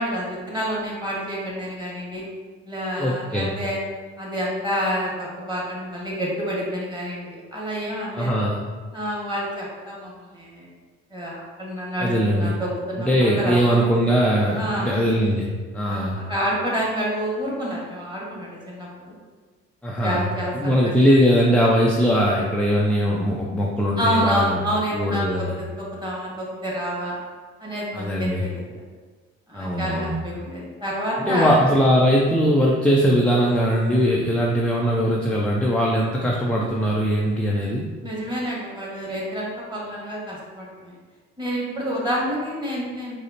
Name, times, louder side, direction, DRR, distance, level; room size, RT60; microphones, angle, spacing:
voice 1, 0.0-2.2 2.6-3.8 4.2-8.4 8.9-10.7 11.1-13.6 14.5-14.9 15.9-19.2 20.0-20.9 24.0-27.1 27.6-28.8 29.5-31.6 38.0-40.9 41.4-43.2, equal, 15° right, -5 dB, 1.5 m, -28 dB
voice 2, 3.0-3.5 8.1-8.6 12.0-12.5 13.0-15.5 15.7-16.2 19.8-20.3 20.5-24.6 24.9-25.5 27.9-28.4 29.5-30.1 31.2-37.9, equal, 5° left, -3 dB, 0.4 m, -20 dB
4.8 x 2.1 x 2.8 m, 1.4 s
hypercardioid pair, 65°, 33 cm